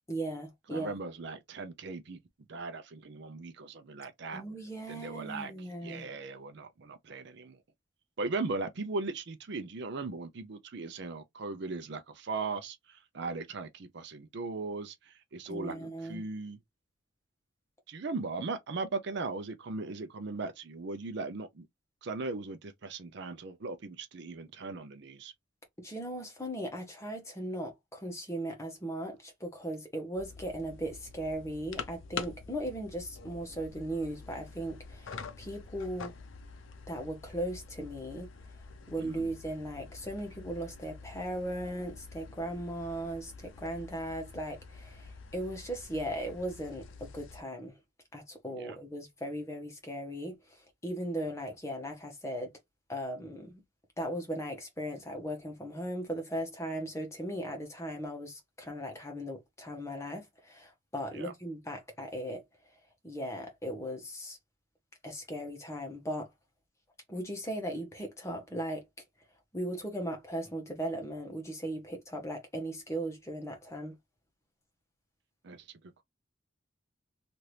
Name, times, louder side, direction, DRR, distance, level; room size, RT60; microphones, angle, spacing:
voice 1, 0.1-0.9 4.3-6.1 15.5-16.2 25.8-36.1 36.9-38.3 38.9-47.8 48.1-52.5 52.9-53.6 54.0-62.4 63.0-64.4 65.0-66.3 67.1-68.8 69.5-73.9, right 1 dB, 15° left, 0.8 m, -38 dB
voice 2, 0.7-4.4 4.9-7.6 8.2-16.6 17.9-21.7 22.0-25.3 39.0-39.3 48.5-48.8 61.1-61.3 75.4-76.0, right 3 dB, 60° right, 0.5 m, -38 dB
sound 1, 30.1-47.4, left 4 dB, 70° left, 0.6 m, -47 dB
2.9 x 2.5 x 3.2 m
head